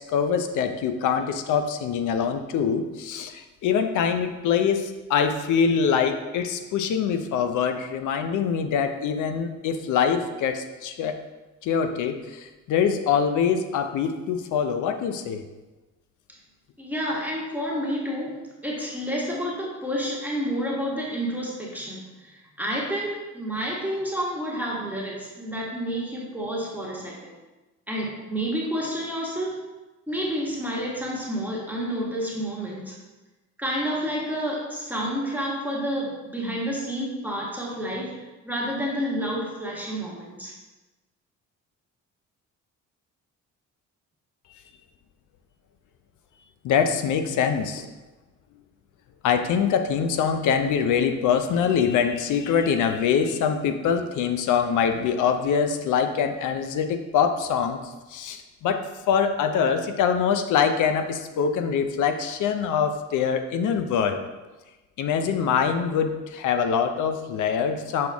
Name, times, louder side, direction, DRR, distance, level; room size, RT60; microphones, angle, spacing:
voice 1, 0.0-11.2 11.6-15.4 46.6-47.9 49.2-57.8 58.1-64.2 65.0-68.1, left 7 dB, 80° left, 7 dB, 0.6 m, -24 dB
voice 2, 16.8-18.3 18.6-27.3 27.9-29.6 30.1-33.0 33.6-38.1 38.4-40.5, equal, 5° right, -4 dB, 1.4 m, -29 dB
6.5 x 4.1 x 3.5 m, 1.1 s
cardioid pair, 90°, 30 cm